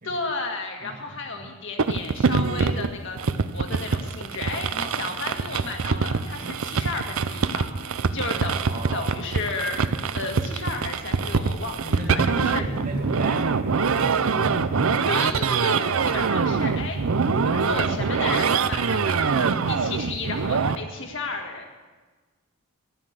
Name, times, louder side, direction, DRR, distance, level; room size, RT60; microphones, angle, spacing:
voice 1, 0.0-7.7 8.1-8.6 8.9-9.9 10.1-11.8 12.1-12.6 15.1-17.0 17.5-21.7, left 3 dB, 55° left, 3 dB, 1.9 m, -33 dB
voice 2, 0.8-1.5 4.7-5.3 8.5-9.1 11.8-14.9, right 1 dB, 40° right, 1 dB, 2.6 m, -36 dB
sound 1, 1.8-20.8, right 5 dB, 70° right, 0.6 m, -24 dB
13.5 x 11.0 x 6.6 m, 1.3 s
head